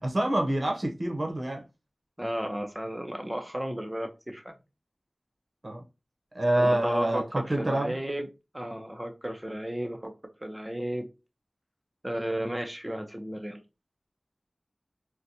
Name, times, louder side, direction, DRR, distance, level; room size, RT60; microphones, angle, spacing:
voice 1, 0.0-1.6 5.6-5.8 6.3-7.9, right 1 dB, 60° right, 2 dB, 0.8 m, -27 dB
voice 2, 2.2-4.6 6.6-8.3 8.5-10.1 10.4-11.1 12.0-13.6, equal, 15° right, 4 dB, 0.7 m, -33 dB
3.9 x 2.2 x 2.7 m, 0.27 s
wide cardioid pair, 55°, 0 cm